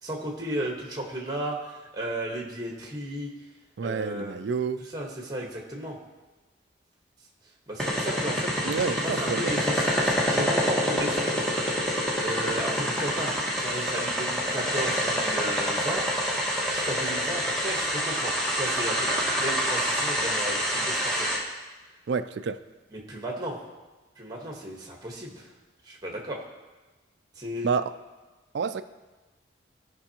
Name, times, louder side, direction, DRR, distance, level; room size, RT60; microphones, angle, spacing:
voice 1, 0.0-3.3 3.8-4.3 4.8-6.0 7.7-8.5 8.9-11.5 12.2-16.0 16.7-21.3 22.9-23.6 24.2-25.5 25.8-26.4 27.4-27.7, right 1 dB, 20° right, -1 dB, 1.3 m, -34 dB
voice 2, 3.8-4.8 8.6-9.5 22.1-22.6 27.6-27.8 28.5-28.8, right 5 dB, 65° right, 11 dB, 0.4 m, -28 dB
sound 1, 7.8-21.4, equal, 5° left, 1.3 m, -27 dB
15.5 x 5.4 x 2.9 m, 1.2 s
head